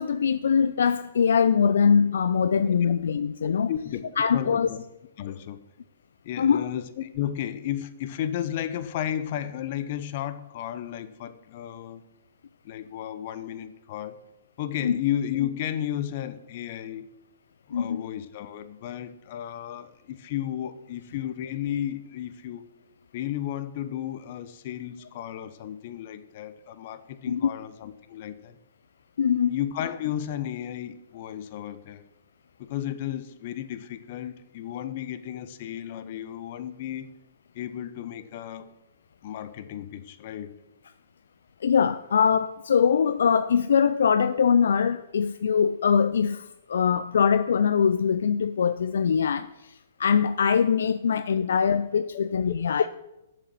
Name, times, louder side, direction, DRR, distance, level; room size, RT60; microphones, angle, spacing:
voice 1, 0.0-3.7 4.2-4.7 6.4-6.7 14.8-15.0 17.7-18.0 27.3-27.5 29.2-29.6 41.6-52.9, left 6 dB, 75° left, 0.4 m, -22 dB
voice 2, 3.4-4.0 4.3-4.8 5.2-5.6 6.2-12.0 12.6-14.2 14.6-17.0 17.7-22.6 23.1-28.6 29.5-32.0 32.6-37.1 37.5-38.7 39.2-40.6 51.4-51.5 52.1-52.3, left 11 dB, 50° left, 0.8 m, -33 dB
7.6 x 6.5 x 7.6 m
hypercardioid pair, 130°, 0 cm